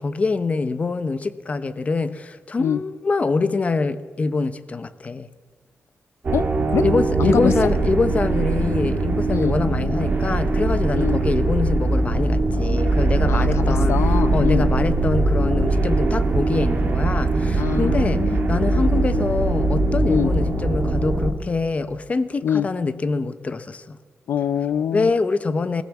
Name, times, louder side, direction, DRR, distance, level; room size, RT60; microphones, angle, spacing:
voice 1, 0.0-5.3 6.8-14.0 14.3-24.0 24.9-25.8, left 3 dB, 30° left, 0.8 m, -24 dB
sound 1, 6.2-21.3, right 2 dB, 35° right, 2.7 m, -21 dB
voice 2, 6.3-6.8 7.2-7.5 9.3-9.6 10.9-11.2 13.3-14.7 17.5-19.2 20.1-20.3 22.4-22.7 24.3-25.1, left 8 dB, 80° left, 0.6 m, -25 dB
20.5 x 17.5 x 7.2 m
wide cardioid pair, 160°, 5 cm